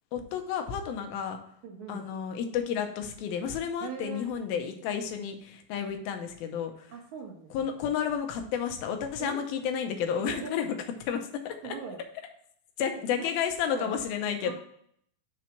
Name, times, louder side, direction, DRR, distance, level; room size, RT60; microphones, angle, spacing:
voice 1, 0.1-1.4 1.9-6.9 7.5-10.7 11.1-11.7 12.8-14.5, left 8 dB, 90° left, 5 dB, 2.7 m, -31 dB
voice 2, 1.6-2.0 3.8-4.3 6.9-7.7 9.2-9.4 10.1-10.5 11.6-12.0 13.2-14.0 14.4-14.5, right 5 dB, 65° right, 1 dB, 2.0 m, -41 dB
6.1 x 4.5 x 5.7 m, 0.67 s
omnidirectional pair, 4.3 m